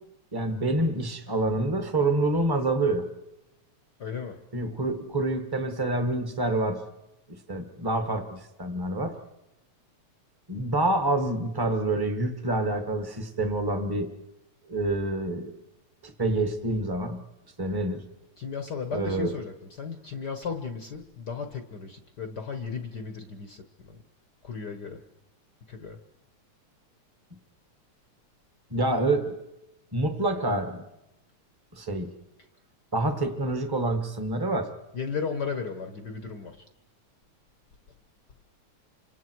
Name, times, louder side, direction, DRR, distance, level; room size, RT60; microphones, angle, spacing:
voice 1, 0.3-3.1 4.5-6.8 7.5-9.2 10.5-14.1 14.7-15.5 16.0-17.2 17.6-18.0 18.9-19.3 28.7-29.4 29.9-30.8 31.7-32.1 32.9-34.7, right 2 dB, 15° right, 7 dB, 1.0 m, -27 dB
voice 2, 4.0-4.4 18.4-24.0 24.4-25.0 25.7-26.0 34.9-36.6, left 5 dB, 55° left, 6 dB, 1.2 m, -35 dB
29.5 x 26.5 x 4.7 m, 0.94 s
omnidirectional pair, 3.3 m